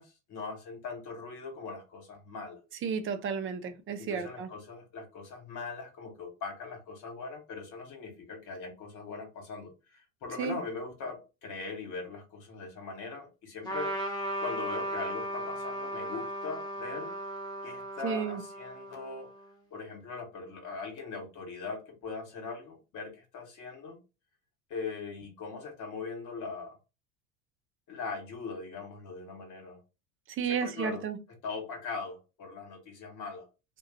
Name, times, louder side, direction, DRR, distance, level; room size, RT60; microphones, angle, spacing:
voice 1, 0.0-2.6 4.0-13.9 14.4-17.1 17.6-19.3 19.7-24.0 24.7-26.8 27.9-29.8 30.4-31.0 31.3-33.5, left 4 dB, 50° left, 1.3 m, -40 dB
voice 2, 2.8-4.5 10.4-10.6 18.0-18.4 30.4-31.2, right 6 dB, 30° right, 0.6 m, -32 dB
Trumpet, 13.6-19.5, right 1 dB, 10° left, 1.1 m, -36 dB
2.5 x 2.2 x 3.8 m
hypercardioid pair, 75°, 40 cm